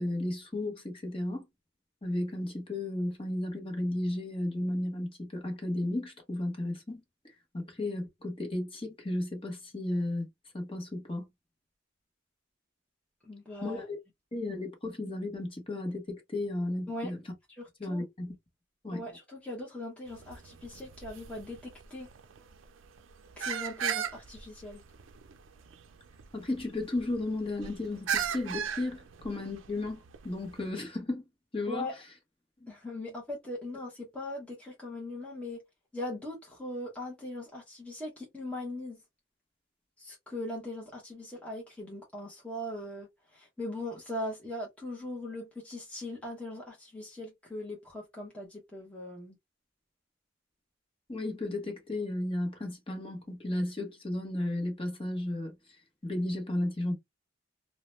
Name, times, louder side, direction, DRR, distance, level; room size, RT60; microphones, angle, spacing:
voice 1, 0.0-1.4 2.0-7.0 7.5-10.3 10.5-11.2 13.6-14.0 14.3-17.2 17.8-18.3 18.8-19.0 26.3-31.2 31.5-31.9 51.1-55.5 56.0-56.9, left 1 dB, 30° left, 1.1 m, -34 dB
voice 2, 13.2-13.9 16.9-17.1 17.6-18.0 18.9-22.1 23.4-24.8 31.7-31.9 32.7-35.6 35.9-39.0 40.0-49.4, left 1 dB, 5° left, 0.8 m, -40 dB
sound 1, 20.1-30.7, right 8 dB, 85° right, 0.5 m, -38 dB
2.7 x 2.1 x 3.0 m
head